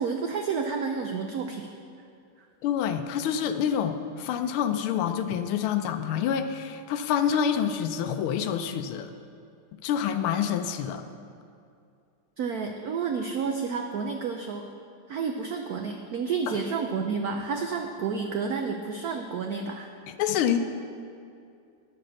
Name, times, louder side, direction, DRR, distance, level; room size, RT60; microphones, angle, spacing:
voice 1, 0.0-1.7 12.4-14.7 15.1-19.9, right 5 dB, 90° right, 4 dB, 0.8 m, -30 dB
voice 2, 2.6-9.1 9.8-11.0 16.5-16.6 20.2-20.6, left 8 dB, 80° left, 7 dB, 1.5 m, -27 dB
10.0 x 7.6 x 6.3 m, 2.4 s
omnidirectional pair, 2.3 m